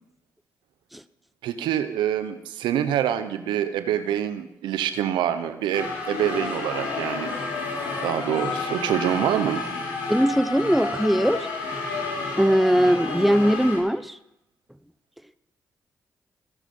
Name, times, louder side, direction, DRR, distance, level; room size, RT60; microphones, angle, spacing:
voice 1, 1.4-7.3 8.0-9.6, right 10 dB, 80° right, 11 dB, 1.0 m, -26 dB
sound 1, 5.7-13.8, left 3 dB, 90° left, 3.7 m, -30 dB
voice 2, 10.1-11.5 12.4-14.2, equal, ahead, 14 dB, 0.9 m, -20 dB
20.0 x 10.0 x 5.6 m, 0.87 s
hypercardioid pair, 45°, 8 cm